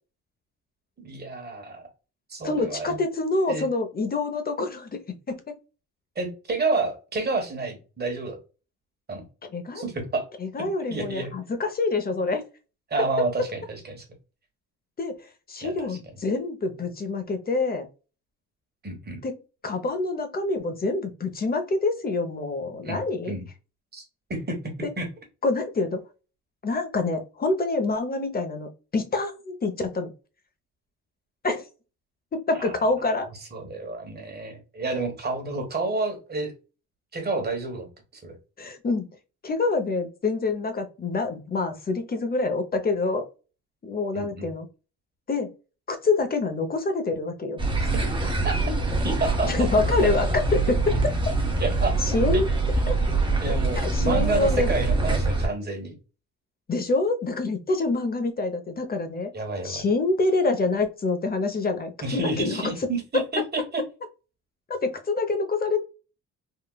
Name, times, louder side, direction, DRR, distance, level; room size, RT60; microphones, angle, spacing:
voice 1, 1.0-1.8 2.3-3.0 3.5-3.7 6.1-8.4 9.1-9.3 9.7-10.3 10.6-11.3 12.9-14.0 15.6-16.0 18.8-19.2 22.8-23.4 23.9-24.0 24.3-25.1 32.5-32.7 33.5-36.5 37.1-37.9 38.2-38.4 44.1-44.5 47.8-48.6 49.0-49.7 51.6-51.9 52.3-52.4 53.4-56.0 59.3-59.8 62.0-63.8, right 3 dB, 35° right, 3 dB, 1.3 m, -30 dB
voice 2, 2.4-5.0 5.3-5.4 9.5-9.8 10.4-12.4 15.0-15.1 15.5-17.9 19.2-19.4 19.6-23.3 24.8-24.9 25.4-26.0 26.6-30.1 31.4-31.7 32.3-33.3 38.6-39.1 39.4-43.2 43.8-44.7 45.3-45.5 45.9-47.6 49.4-50.3 50.5-51.0 52.0-52.5 52.9-53.0 53.7-54.7 56.7-59.3 59.6-62.6 64.7-65.8, left 3 dB, 30° left, 7 dB, 0.8 m, -26 dB
sound 1, 47.6-55.5, right 3 dB, 15° right, 0.9 m, -24 dB
3.7 x 2.3 x 2.2 m, 0.32 s
cardioid pair, 90°, 30 cm